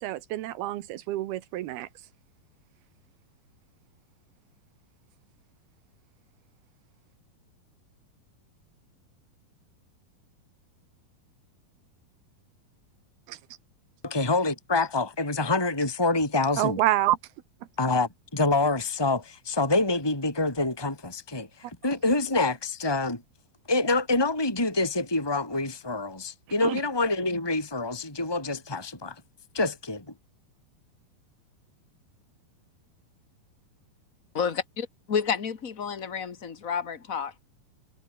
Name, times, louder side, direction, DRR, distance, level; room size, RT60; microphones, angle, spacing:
voice 1, 0.0-1.9 13.3-13.4 16.6-17.2 26.6-26.8, right 14 dB, 85° right, 3.0 m, -27 dB
voice 2, 14.0-16.8 17.8-21.5 21.8-23.2 23.7-29.1 29.5-30.0, left 2 dB, 5° left, 4.1 m, -26 dB
voice 3, 34.3-37.4, left 6 dB, 70° left, 0.7 m, -30 dB
omnidirectional pair, 4.4 m